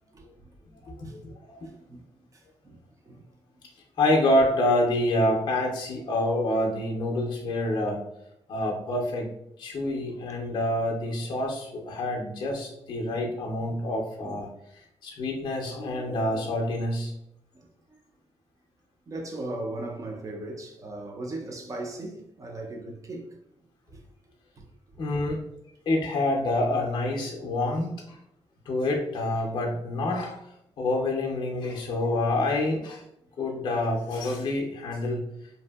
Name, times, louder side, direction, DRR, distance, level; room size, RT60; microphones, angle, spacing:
voice 1, 0.9-1.7 4.0-8.0 8.5-9.3 9.6-14.5 15.0-17.1 25.0-25.4 25.9-28.2 28.7-30.5 30.8-33.0 33.4-35.2, left 1 dB, 45° left, 0.5 m, -27 dB
voice 2, 1.6-2.1 2.3-3.2 14.2-14.4 17.5-18.0 19.1-23.3 23.9-24.0 24.6-24.7, right 2 dB, 30° right, 0.4 m, -38 dB
2.6 x 2.6 x 2.3 m
wide cardioid pair, 165°, 11 cm